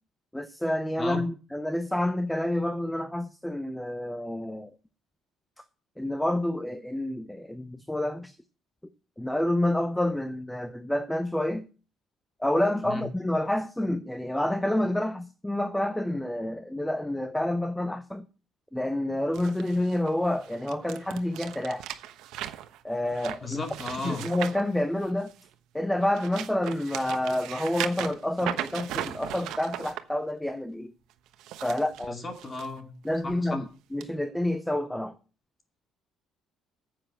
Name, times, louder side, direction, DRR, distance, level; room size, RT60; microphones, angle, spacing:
voice 1, 0.3-4.7 6.0-8.4 9.2-11.7 12.4-18.2 18.7-21.9 22.8-23.6 24.0-25.3 25.7-30.9 31.6-32.2 33.0-33.6 33.9-35.1, left 1 dB, 5° left, 0.6 m, -28 dB
sound 1, 19.3-25.5 25.9-30.0 31.3-32.7 33.1-33.4 34.0-34.1, right 12 dB, 70° right, 1.1 m, -38 dB
voice 2, 23.4-24.3 32.1-32.9 33.2-33.6, left 3 dB, 20° left, 2.5 m, -35 dB
9.7 x 7.6 x 7.5 m
cardioid pair, 160°, 0 cm